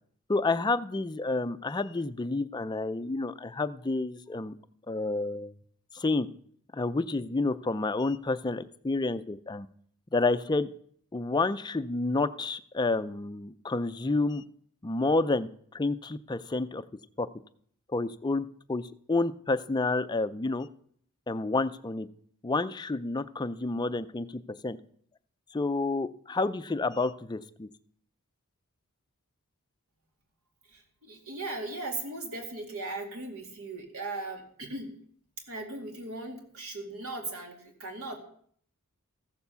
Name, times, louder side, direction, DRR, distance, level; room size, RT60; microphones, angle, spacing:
voice 1, 0.3-4.6 4.9-5.5 5.9-6.3 6.7-9.7 10.1-10.7 11.1-14.4 14.8-16.8 17.2-17.3 17.9-20.7 21.3-22.1 22.4-24.8 25.5-27.7, left 3 dB, 20° left, 12 dB, 0.4 m, -29 dB
voice 2, 30.7-35.0 35.5-38.2, right 2 dB, 70° right, 3 dB, 2.3 m, -38 dB
14.5 x 7.0 x 6.9 m, 0.62 s
head